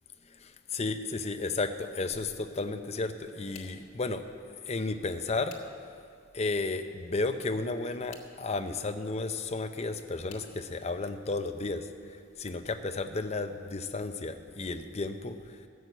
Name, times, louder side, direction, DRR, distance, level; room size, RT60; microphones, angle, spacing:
voice 1, 0.3-4.2 4.6-5.6 6.3-15.6, left 3 dB, 30° left, 7 dB, 0.6 m, -33 dB
sound 1, 3.2-3.9 4.8-6.1 7.7-8.4 9.5-10.6 11.3-11.7 12.1-12.2 13.6-13.7, left 6 dB, 80° left, 1.5 m, -54 dB
13.5 x 6.3 x 8.0 m, 2.2 s
head